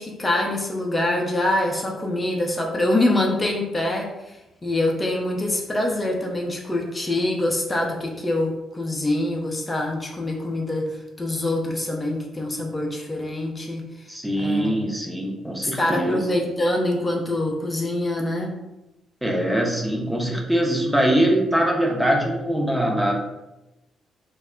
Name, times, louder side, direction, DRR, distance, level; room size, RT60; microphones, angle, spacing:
voice 1, 0.0-13.8 14.4-14.8 15.6-18.5, left 1 dB, 25° left, 0 dB, 0.6 m, -25 dB
voice 2, 14.1-16.2 19.2-23.1, right 1 dB, 10° right, -1 dB, 0.8 m, -22 dB
2.2 x 2.0 x 3.7 m, 0.97 s
hypercardioid pair, 50°, 0 cm